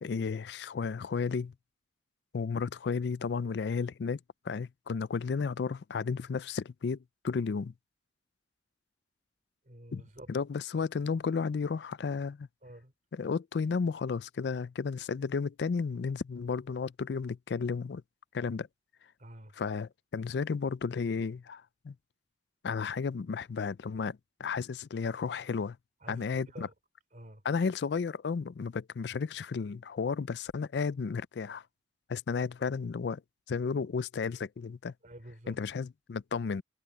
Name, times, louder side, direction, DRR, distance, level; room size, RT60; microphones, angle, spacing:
voice 1, 0.0-1.5 2.3-4.2 4.4-7.0 7.2-7.7 9.9-10.0 10.3-12.5 13.1-18.0 18.3-18.7 19.6-21.9 22.6-25.8 26.1-26.7 27.4-31.6 32.1-33.2 33.5-34.9 35.5-36.6, left 5 dB, 65° left, 0.4 m, -33 dB
voice 2, 9.7-10.3 12.6-12.9 19.2-19.5 26.0-26.7 27.1-27.4 35.0-35.6, right 1 dB, 45° right, 3.6 m, -49 dB
head